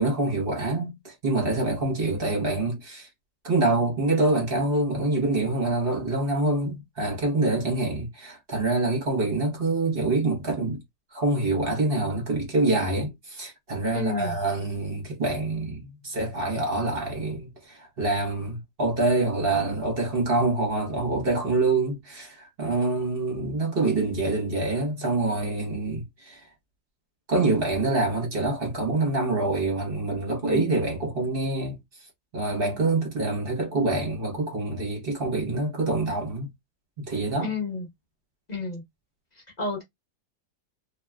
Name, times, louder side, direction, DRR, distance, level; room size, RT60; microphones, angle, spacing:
voice 1, 0.0-3.1 3.4-10.8 11.1-26.5 27.3-31.8 32.3-36.5 37.0-37.5, right 2 dB, 40° right, 0.9 m, -26 dB
voice 2, 13.9-14.3 30.4-30.8 37.4-37.9 38.5-38.8 39.4-39.8, left 4 dB, 30° left, 0.9 m, -31 dB
3.0 x 2.5 x 2.3 m
omnidirectional pair, 2.0 m